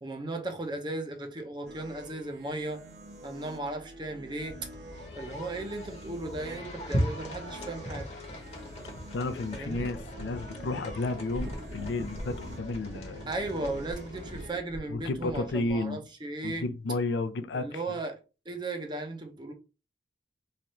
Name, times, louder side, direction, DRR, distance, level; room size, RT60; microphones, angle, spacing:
voice 1, 0.0-2.8 3.2-4.6 5.2-8.1 9.5-9.9 13.3-16.7 17.5-18.2 18.5-19.5, right 2 dB, 25° right, 0.6 m, -36 dB
sound 1, 1.6-14.6, right 1 dB, 65° right, 1.0 m, -48 dB
sound 2, 4.4-14.5, equal, 35° left, 0.9 m, -39 dB
voice 2, 9.1-13.3 14.9-16.0 16.4-17.8, left 2 dB, 80° left, 0.5 m, -32 dB
sound 3, 9.5-15.8, equal, 90° right, 1.1 m, -43 dB
3.3 x 2.4 x 4.2 m
head